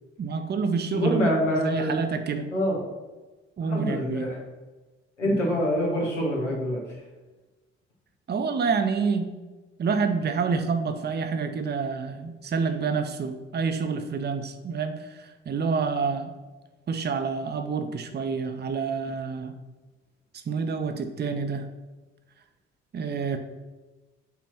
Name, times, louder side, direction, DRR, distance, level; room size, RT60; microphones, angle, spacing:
voice 1, 0.2-2.5 3.6-4.3 5.3-5.7 8.3-9.4 9.8-16.3 16.9-19.5 20.5-21.7 22.9-23.4, right 5 dB, 30° right, 6 dB, 0.8 m, -28 dB
voice 2, 0.9-2.0 2.5-2.8 3.6-4.4 5.2-6.8, equal, 90° left, -3 dB, 1.3 m, -25 dB
5.7 x 4.2 x 5.9 m, 1.2 s
figure-of-eight pair, 45°, 35 cm